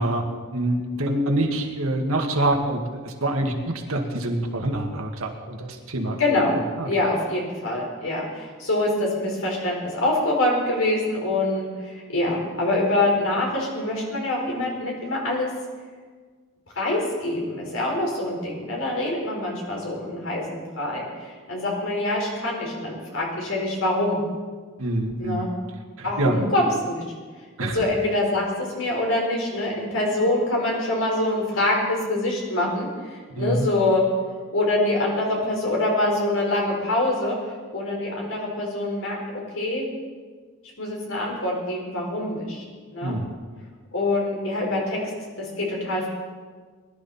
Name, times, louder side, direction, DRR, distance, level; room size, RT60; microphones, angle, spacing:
voice 1, 0.0-6.2 6.8-6.9 24.8-25.5 26.0-26.4 27.6-27.8 33.3-33.7 43.0-43.3, right 1 dB, 85° right, 3 dB, 1.9 m, -26 dB
voice 2, 6.2-6.5 6.8-15.5 16.7-24.2 25.2-25.5 26.0-27.0 27.6-34.0 34.5-37.4 37.7-39.9 40.8-42.6 42.9-43.2 43.9-45.0 45.4-46.1, left 2 dB, 70° left, -2 dB, 4.4 m, -25 dB
21.0 x 11.5 x 4.3 m, 1.5 s
head